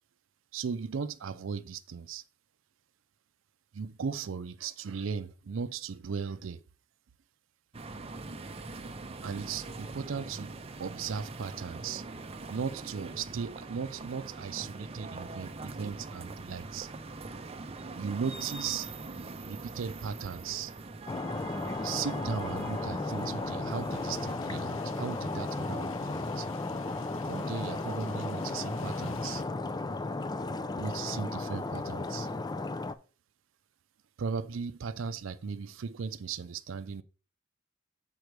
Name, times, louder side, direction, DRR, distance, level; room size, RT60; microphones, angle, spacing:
voice 1, 0.5-2.2 3.7-6.6 9.2-12.0 12.5-16.9 17.9-18.9 19.5-20.7 21.8-26.5 27.2-29.4 30.8-32.3 34.2-37.0, right 6 dB, 85° right, 0.5 m, -37 dB
sound 1, 7.7-24.4, right 3 dB, 30° right, 0.6 m, -43 dB
Stream, 21.1-32.9, left 2 dB, 20° left, 0.4 m, -35 dB
sound 2, 23.9-29.4, left 6 dB, 80° left, 0.6 m, -51 dB
6.7 x 4.5 x 4.6 m
head